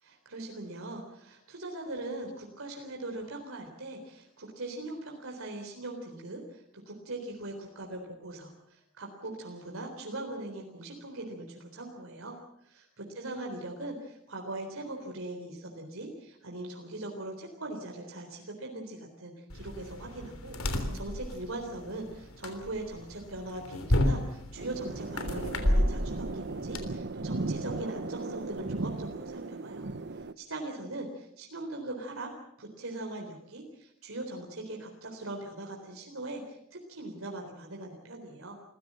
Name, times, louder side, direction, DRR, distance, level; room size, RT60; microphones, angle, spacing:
voice 1, 0.0-29.9 30.1-32.3 32.6-38.6, right 2 dB, 70° right, 1 dB, 3.9 m, -41 dB
sound 1, 19.5-26.8, left 1 dB, 75° left, 3.5 m, -31 dB
sound 2, 24.6-30.3, right 3 dB, 55° right, 0.9 m, -37 dB
28.5 x 16.0 x 7.6 m, 0.81 s
head